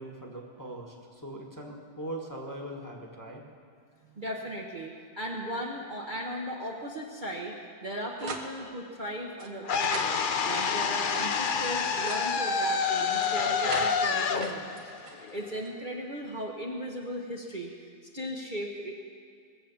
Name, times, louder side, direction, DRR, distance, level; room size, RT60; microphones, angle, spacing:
voice 1, 0.0-3.4, right 1 dB, 10° left, -1 dB, 1.4 m, -40 dB
voice 2, 4.2-7.5 7.8-14.8 15.1-18.9, equal, 35° right, -2 dB, 1.0 m, -37 dB
sound 1, 8.2-8.5 9.4-11.2 11.6-12.3 13.2-15.7, right 4 dB, 75° right, 1.7 m, -41 dB
sound 2, 9.7-15.8, left 5 dB, 90° left, 0.4 m, -28 dB
19.5 x 7.5 x 7.2 m, 2.2 s
omnidirectional pair, 1.8 m